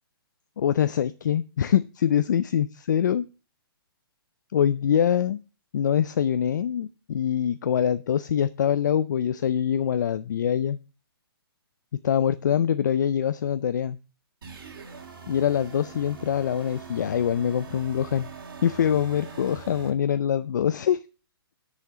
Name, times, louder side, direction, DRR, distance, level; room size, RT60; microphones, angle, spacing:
voice 1, 0.6-3.3 4.5-5.4 5.7-10.8 12.0-14.0 15.3-18.3 18.6-21.0, left 9 dB, 50° left, 13 dB, 0.5 m, -24 dB
sound 1, 14.4-19.9, right 6 dB, 65° right, 3.8 m, -43 dB
7.2 x 6.7 x 7.4 m, 0.33 s
hypercardioid pair, 170°, 13 cm